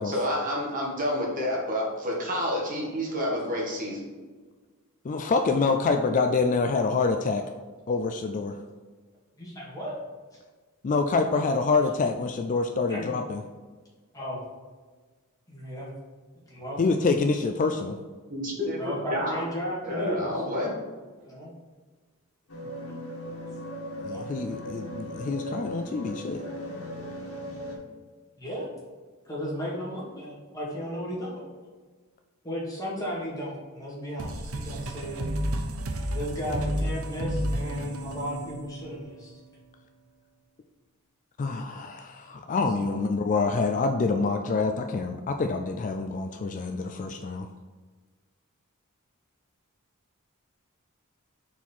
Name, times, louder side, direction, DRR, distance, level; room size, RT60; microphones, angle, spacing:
voice 1, 0.0-4.0 18.3-19.4 19.8-20.8, left 1 dB, 40° right, -3 dB, 1.6 m, -29 dB
voice 2, 5.0-7.4 7.9-8.6 10.8-13.4 16.8-18.0 24.0-26.4 41.4-47.5, left 4 dB, 40° left, 5 dB, 0.3 m, -26 dB
voice 3, 9.4-10.0 12.9-13.1 14.1-14.4 15.5-15.9 16.5-16.8 18.8-20.7 21.2-21.5 24.1-24.2 28.4-28.7 29.3-31.5 32.4-35.3 36.1-39.3 42.8-43.0, equal, 15° left, -5 dB, 1.9 m, -35 dB
sound 1, 22.5-27.8, equal, 85° left, 1.5 m, -38 dB
sound 2, 34.2-39.5, right 1 dB, 75° right, 0.8 m, -32 dB
4.6 x 4.4 x 5.5 m, 1.4 s
head